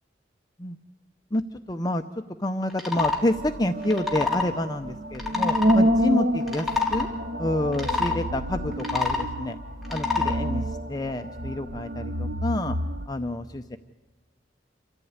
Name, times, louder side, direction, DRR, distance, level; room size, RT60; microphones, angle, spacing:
voice 1, 1.3-7.1 7.4-9.6 9.9-12.8 13.1-13.8, left 1 dB, 20° left, 6 dB, 0.6 m, -28 dB
sound 1, 2.7-3.2 3.8-4.5 5.1-5.8 6.4-7.1 7.7-8.2 8.7-9.3 9.8-10.4, left 4 dB, ahead, 3.5 m, -26 dB
sound 2, 3.0-13.1, equal, 50° right, 0.9 m, -28 dB
27.5 x 14.5 x 9.5 m, 1.3 s
head